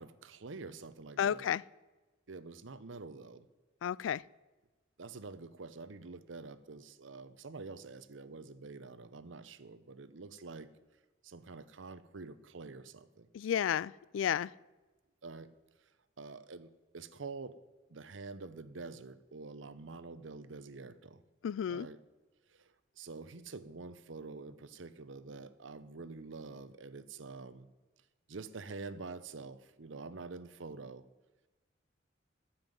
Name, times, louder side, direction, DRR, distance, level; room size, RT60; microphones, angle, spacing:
voice 1, 0.0-1.5 2.3-3.5 5.0-10.7 11.2-13.3 15.2-15.5 16.2-17.6 17.9-21.2 21.7-22.0 22.5-27.7 28.3-31.0, right 3 dB, 80° right, 0.8 m, -47 dB
voice 2, 1.2-1.6 3.8-4.2 13.3-14.5 21.4-21.9, left 9 dB, 85° left, 0.3 m, -32 dB
14.0 x 5.8 x 9.3 m
head